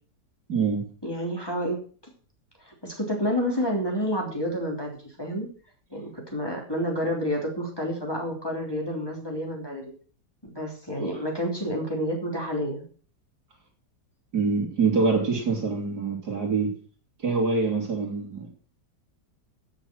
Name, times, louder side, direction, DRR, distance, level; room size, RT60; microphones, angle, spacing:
voice 1, 0.5-0.8 14.3-16.7 17.2-18.5, right 4 dB, 60° right, 2 dB, 3.4 m, -25 dB
voice 2, 1.0-1.8 2.6-5.5 5.9-9.9 10.5-12.8, equal, 10° left, -1 dB, 3.3 m, -29 dB
15.0 x 6.5 x 6.3 m, 0.42 s
omnidirectional pair, 2.0 m